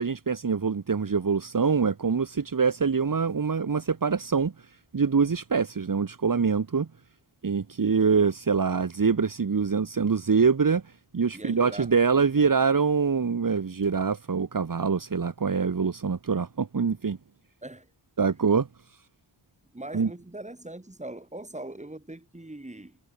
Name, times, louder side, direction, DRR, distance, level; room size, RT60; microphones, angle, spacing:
voice 1, 0.0-4.5 4.9-6.9 7.4-17.2 18.2-18.7 19.9-20.1, right 5 dB, 45° right, 1.9 m, -24 dB
voice 2, 11.3-12.5 17.6-17.9 19.7-23.0, right 1 dB, 15° right, 6.0 m, -41 dB
wide cardioid pair, 105°, 45 cm